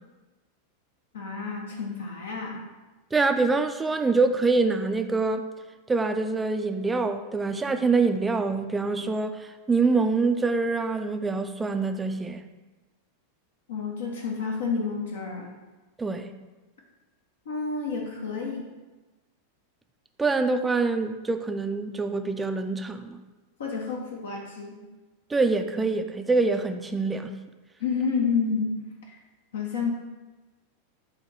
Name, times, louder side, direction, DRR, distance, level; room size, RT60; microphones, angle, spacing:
voice 1, 1.1-2.6 13.7-15.5 17.4-18.7 23.6-24.8 27.8-29.2 29.5-29.9, left 5 dB, 65° left, 0 dB, 0.8 m, -30 dB
voice 2, 3.1-5.5 5.9-12.4 16.0-16.3 20.2-23.2 25.3-27.3, right 3 dB, 10° right, 7 dB, 0.4 m, -25 dB
7.2 x 2.9 x 4.6 m, 1.2 s
figure-of-eight pair, 90°, 0 cm